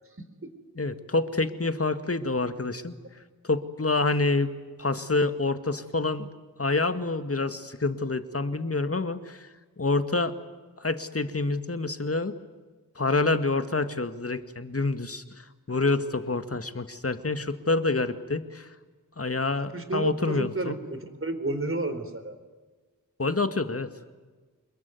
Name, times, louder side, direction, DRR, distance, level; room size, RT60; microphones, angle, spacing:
voice 1, 0.2-0.5 19.7-22.4, right 2 dB, 40° right, 8 dB, 4.3 m, -31 dB
voice 2, 0.8-3.0 3.4-4.5 4.8-6.3 6.6-9.5 9.8-10.4 10.8-12.4 13.0-18.7 19.2-20.7 23.2-23.9, left 3 dB, 40° left, 10 dB, 2.1 m, -27 dB
27.0 x 22.0 x 9.5 m, 1.3 s
cardioid pair, 50°, 35 cm